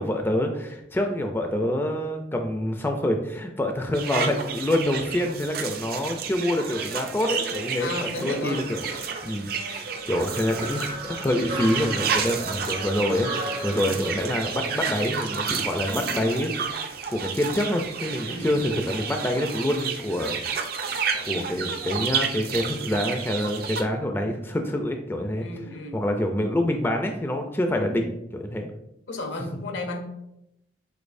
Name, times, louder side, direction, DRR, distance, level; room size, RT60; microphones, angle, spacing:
voice 1, 0.0-8.9 9.2-13.3 13.6-16.5 16.9-20.4 21.3-25.5 25.9-28.7, left 1 dB, 10° left, 4 dB, 0.3 m, -26 dB
sound 1, 3.9-23.8, right 6 dB, 55° right, 0.5 m, -31 dB
voice 2, 7.8-8.7 9.7-9.9 13.7-14.0 18.2-18.5 25.4-26.0 29.1-30.0, left 2 dB, 80° left, 4 dB, 0.7 m, -34 dB
sound 2, 8.4-15.6, right 1 dB, 75° right, 1.4 m, -37 dB
5.1 x 4.1 x 2.6 m, 0.83 s
head